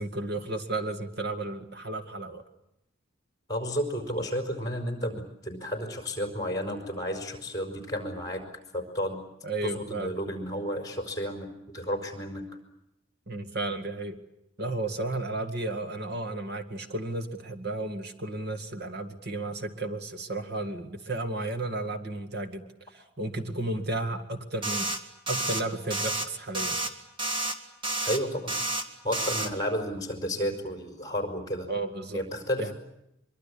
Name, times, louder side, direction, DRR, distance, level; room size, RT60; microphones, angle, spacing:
voice 1, 0.0-2.4 9.4-10.1 13.3-14.2 14.6-24.9 25.3-26.9 31.7-32.2 32.6-32.7, right 2 dB, 50° right, 7 dB, 2.1 m, -33 dB
voice 2, 3.5-8.4 8.7-9.2 9.6-12.5 28.0-28.5 29.0-31.7 32.1-32.7, equal, 15° left, 4 dB, 5.0 m, -32 dB
sound 1, 24.6-25.0 25.3-25.6 25.9-26.3 26.5-26.9 27.2-27.5 27.8-28.2 28.5-28.8 29.1-29.5, right 2 dB, 25° right, 1.9 m, -30 dB
24.0 x 23.5 x 8.6 m, 0.81 s
head